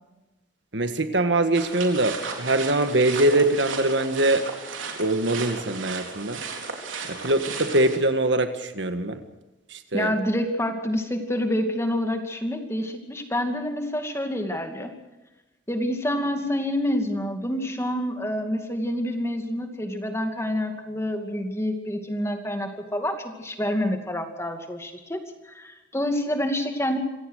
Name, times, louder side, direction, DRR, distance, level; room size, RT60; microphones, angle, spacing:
voice 1, 0.7-4.5 5.0-6.4 7.1-9.2 9.7-10.2, right 2 dB, 65° right, 8 dB, 1.7 m, -23 dB
sound 1, 1.5-8.0, right 5 dB, 85° right, 4.0 m, -35 dB
voice 2, 9.9-14.9 15.7-27.0, left 1 dB, 15° left, 5 dB, 2.4 m, -27 dB
26.5 x 16.5 x 6.5 m, 1.1 s
head